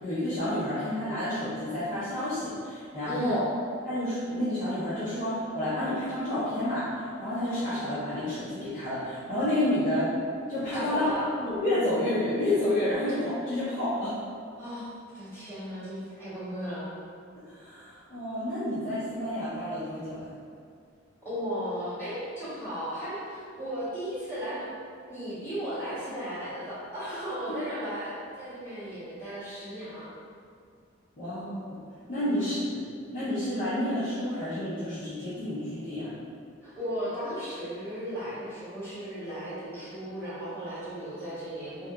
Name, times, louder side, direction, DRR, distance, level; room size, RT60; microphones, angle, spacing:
voice 1, 0.0-3.5 3.8-10.1 10.5-11.1 11.5-14.1 17.5-20.3 31.2-31.8 32.1-32.8 33.1-36.1, left 1 dB, 45° left, -13 dB, 0.6 m, -30 dB
voice 2, 3.0-3.4 10.7-11.2 14.6-14.9 15.1-16.9 21.2-24.7 25.1-30.1 32.2-32.5 36.6-41.9, equal, 15° left, -14 dB, 1.0 m, -35 dB
2.7 x 2.3 x 2.3 m, 2.3 s
head